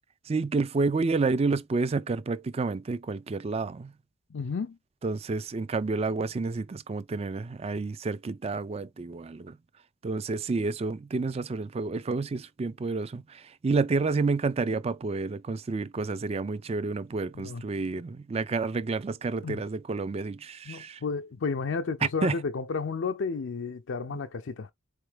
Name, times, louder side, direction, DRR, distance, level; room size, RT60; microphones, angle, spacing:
voice 1, 0.3-3.9 5.0-9.6 10.0-21.0 22.2-22.4, right 3 dB, 30° right, 0.4 m, -29 dB
voice 2, 4.3-4.8 17.3-17.6 19.4-19.6 20.7-24.7, left 4 dB, 65° left, 0.5 m, -32 dB
4.1 x 3.2 x 3.3 m
head